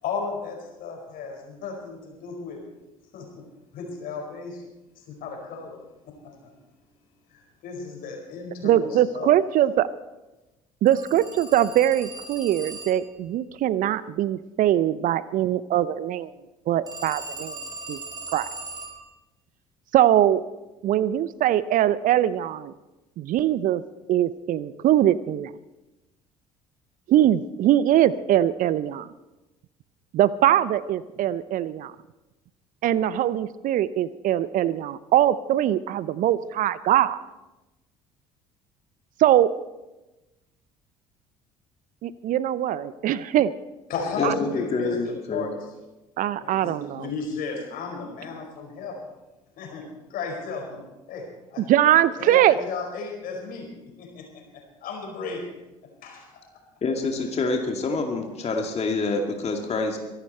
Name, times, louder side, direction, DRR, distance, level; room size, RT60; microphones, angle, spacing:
voice 1, 0.0-2.6 3.1-3.3 3.7-4.6 5.0-5.8 6.2-6.3 7.3-9.3 43.9-45.5 46.3-49.0 49.6-50.8 51.1-51.6 52.2-53.7 54.0-55.5 56.0-56.4, left 4 dB, 60° left, 2 dB, 5.0 m, -34 dB
voice 2, 8.6-9.9 10.8-16.3 16.7-17.6 17.9-18.0 18.3-18.5 19.9-20.4 20.8-22.7 23.2-23.8 24.1-25.5 27.1-29.1 30.1-31.9 32.8-37.2 39.2-39.5 42.0-43.5 44.2-44.3 46.2-47.1 51.6-52.6, right 12 dB, 50° right, 17 dB, 0.6 m, -22 dB
Telephone, 10.9-13.2 16.9-19.1, right 3 dB, 25° right, 4.7 m, -39 dB
voice 3, 44.2-45.5 56.8-60.0, left 3 dB, 40° left, 2 dB, 2.3 m, -27 dB
23.5 x 11.5 x 4.4 m, 1.1 s
hypercardioid pair, 55°, 17 cm